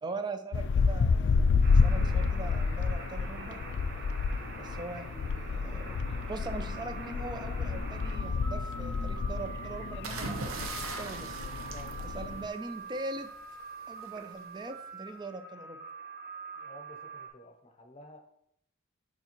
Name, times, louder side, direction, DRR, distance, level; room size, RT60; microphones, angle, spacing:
voice 1, 0.0-3.6 4.6-11.5 12.0-13.3 13.9-15.8, right 2 dB, 20° right, 8 dB, 0.4 m, -41 dB
sound 1, 0.5-12.5, left 4 dB, 55° left, 0.3 m, -30 dB
sound 2, 1.6-17.3, right 3 dB, 50° right, 1.1 m, -45 dB
sound 3, 10.0-12.8 14.0-14.3, right 3 dB, 80° right, 0.8 m, -39 dB
voice 2, 16.6-18.2, equal, 30° left, 4 dB, 0.8 m, -52 dB
6.8 x 4.9 x 3.0 m, 0.74 s
head